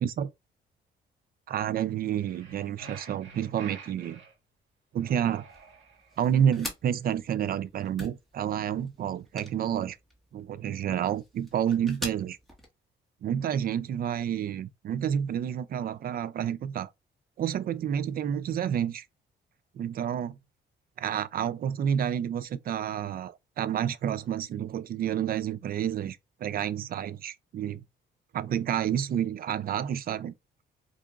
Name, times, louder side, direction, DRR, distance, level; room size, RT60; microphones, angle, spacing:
voice 1, 1.5-4.2 4.9-5.5 6.2-10.0 10.3-12.4 13.2-16.9 17.4-19.1 19.7-20.4 21.0-27.8 28.3-30.3, right 9 dB, 50° right, 0.4 m, -29 dB
sound 1, 2.2-4.3 5.0-6.2, right 5 dB, 75° right, 1.3 m, -49 dB
sound 2, 5.5-12.7, equal, ahead, 1.4 m, -45 dB
4.5 x 2.5 x 2.3 m
cardioid pair, 90°, 20 cm